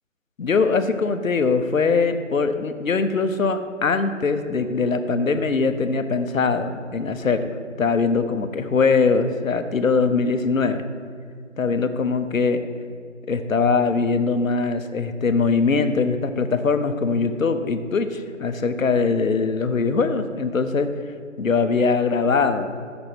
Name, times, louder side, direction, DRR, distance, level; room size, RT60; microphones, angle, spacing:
voice 1, 0.4-10.8 11.6-12.6 13.3-20.9 21.4-22.7, left 4 dB, 85° left, 9 dB, 0.6 m, -22 dB
5.8 x 3.6 x 5.9 m, 2.2 s
figure-of-eight pair, 165°, 39 cm